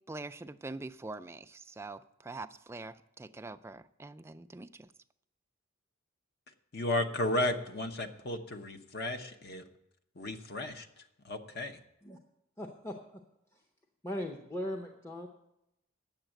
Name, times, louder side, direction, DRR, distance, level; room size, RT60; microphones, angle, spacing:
voice 1, 0.1-4.9, right 2 dB, 15° right, 9 dB, 0.3 m, -44 dB
voice 2, 6.7-9.7 10.1-11.8, left 1 dB, 50° left, 7 dB, 0.9 m, -34 dB
voice 3, 12.6-13.2 14.0-15.3, left 1 dB, 15° left, 1 dB, 0.7 m, -39 dB
9.1 x 7.2 x 8.9 m, 0.85 s
head